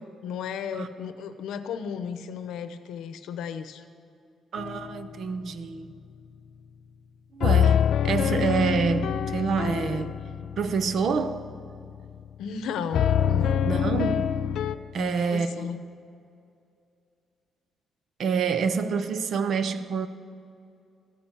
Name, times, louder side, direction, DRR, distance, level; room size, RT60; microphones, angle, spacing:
voice 1, 0.0-3.8 12.4-13.7 15.0-15.8, left 7 dB, 90° left, 0.8 m, -34 dB
voice 2, 4.5-5.9 7.3-10.2 10.6-11.5 13.6-14.4 14.9-15.7 18.2-20.1, right 5 dB, 55° right, 0.7 m, -27 dB
sound 1, 4.6-5.2 7.4-12.2 12.9-14.8, left 9 dB, 65° left, 0.4 m, -26 dB
13.5 x 10.0 x 7.2 m
cardioid pair, 145°, 0 cm